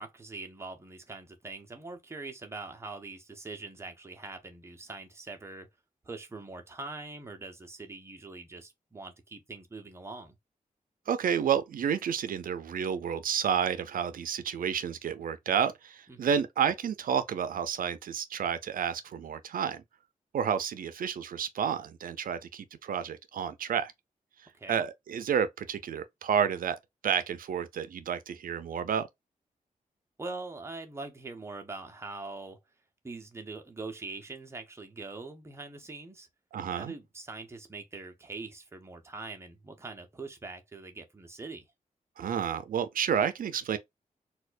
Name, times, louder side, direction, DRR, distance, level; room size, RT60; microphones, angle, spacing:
voice 1, 0.0-5.7 6.0-10.3 16.1-16.4 24.5-24.8 30.2-32.6 33.0-36.3 36.7-41.6, right 3 dB, 20° right, 0.7 m, -43 dB
voice 2, 11.1-19.8 20.3-23.9 24.7-26.8 27.0-29.1 36.5-36.9 42.2-43.8, right 8 dB, 80° right, 0.4 m, -30 dB
4.2 x 2.3 x 2.4 m
wide cardioid pair, 170°, 14 cm